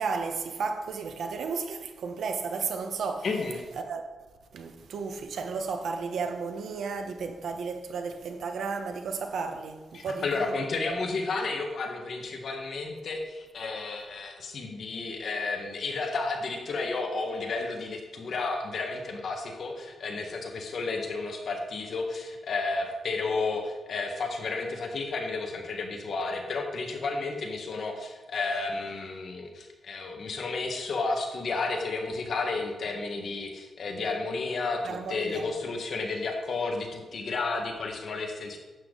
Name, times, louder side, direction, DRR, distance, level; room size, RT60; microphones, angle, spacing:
voice 1, 0.0-3.3 3.8-4.0 4.5-10.5 34.8-35.5, right 5 dB, 75° right, 1.1 m, -33 dB
voice 2, 3.2-3.6 9.9-38.6, left 3 dB, 55° left, 1.6 m, -32 dB
11.5 x 8.3 x 4.0 m
wide cardioid pair, 125°, 0 cm